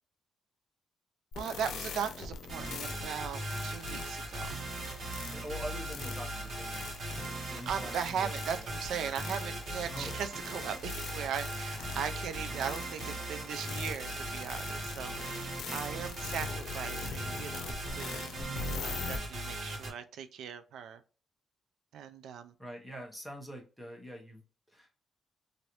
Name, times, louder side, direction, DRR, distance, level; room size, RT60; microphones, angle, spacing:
sound 1, 1.3-19.2, left 5 dB, 80° left, 0.6 m, -43 dB
voice 1, 1.3-4.5 7.5-18.4 18.8-21.0 21.9-22.5, right 8 dB, 85° right, 0.3 m, -38 dB
sound 2, 2.5-19.9, right 1 dB, 50° right, 1.1 m, -39 dB
voice 2, 5.3-7.0 7.5-8.8 9.9-10.1 18.4-18.8 22.6-24.4 24.7-24.9, right 1 dB, ahead, 0.9 m, -44 dB
3.1 x 2.6 x 2.9 m
wide cardioid pair, 175°, 0 cm